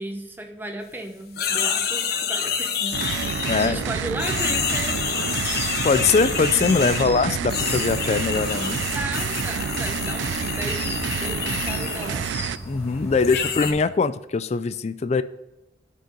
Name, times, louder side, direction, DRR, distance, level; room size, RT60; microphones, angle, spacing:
voice 1, 0.0-3.0 3.3-5.0 8.8-12.3 13.2-13.7, right 1 dB, 10° right, 4 dB, 1.0 m, -35 dB
sound 1, 1.3-3.9 4.2-7.1 7.5-12.3 13.2-13.7, left 7 dB, 55° left, 0.9 m, -28 dB
sound 2, 2.9-12.6, right 8 dB, 75° right, 0.3 m, -29 dB
voice 2, 3.5-3.8 5.8-8.8 12.6-15.2, left 4 dB, 35° left, 13 dB, 0.3 m, -22 dB
sound 3, 3.6-13.8, equal, 10° left, 1.5 m, -38 dB
10.0 x 5.4 x 3.7 m, 0.96 s
head